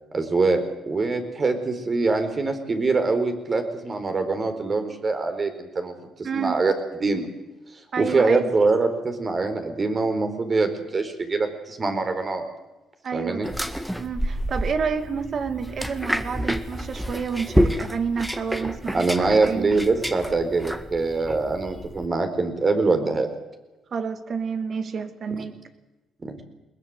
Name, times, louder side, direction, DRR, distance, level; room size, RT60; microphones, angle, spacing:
voice 1, 0.1-0.6 0.9-5.9 6.3-6.7 7.0-7.3 8.0-12.4 13.1-13.5 18.9-23.3 25.4-25.5 26.2-26.4, right 3 dB, 35° right, 7 dB, 4.3 m, -23 dB
voice 2, 6.2-6.6 7.9-8.5 13.0-13.5 14.0-19.8 23.9-25.6, right 6 dB, 50° right, 9 dB, 2.3 m, -29 dB
sound 1, 13.4-22.1, equal, 5° right, 1.8 m, -28 dB
21.0 x 21.0 x 7.9 m, 1.1 s
cardioid pair, 90°, 0 cm